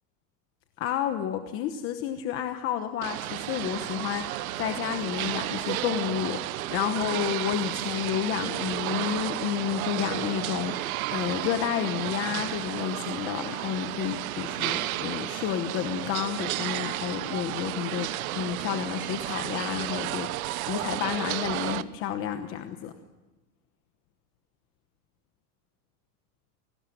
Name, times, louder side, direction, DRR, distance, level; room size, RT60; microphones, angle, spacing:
voice 1, 0.8-22.9, left 10 dB, 30° left, 7 dB, 1.1 m, -31 dB
sound 1, 3.0-21.8, right 16 dB, 65° right, 1.1 m, -32 dB
26.5 x 19.5 x 7.8 m, 1.2 s
supercardioid pair, 165°, 46 cm